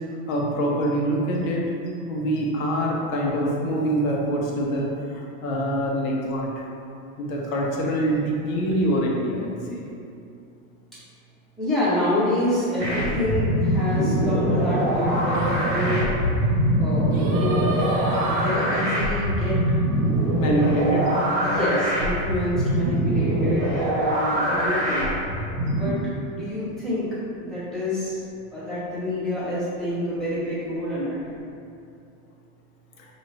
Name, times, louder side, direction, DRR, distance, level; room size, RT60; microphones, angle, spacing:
voice 1, 0.3-1.6 2.1-4.9 5.1-6.5 7.2-9.9 20.4-21.0, right 1 dB, 65° left, -2 dB, 1.0 m, -24 dB
voice 2, 11.6-16.1 16.4-17.8 18.3-19.6 21.4-25.1 25.7-27.1 27.4-28.2 28.5-31.2, left 1 dB, ahead, -13 dB, 0.7 m, -27 dB
sound 1, 12.8-25.9, right 1 dB, 25° right, 1.0 m, -23 dB
Singing, 15.3-20.6, right 2 dB, 60° right, 0.8 m, -34 dB
6.0 x 2.6 x 3.2 m, 2.5 s
supercardioid pair, 170°, 44 cm